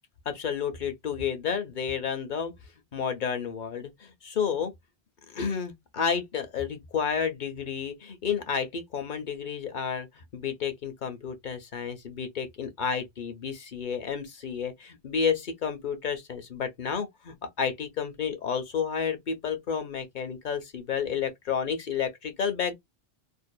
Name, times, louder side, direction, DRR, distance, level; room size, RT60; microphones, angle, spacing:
voice 1, 0.3-2.5 2.9-4.7 5.3-22.7, left 7 dB, 50° left, 0.7 m, -31 dB
2.6 x 2.3 x 2.2 m
omnidirectional pair, 1.1 m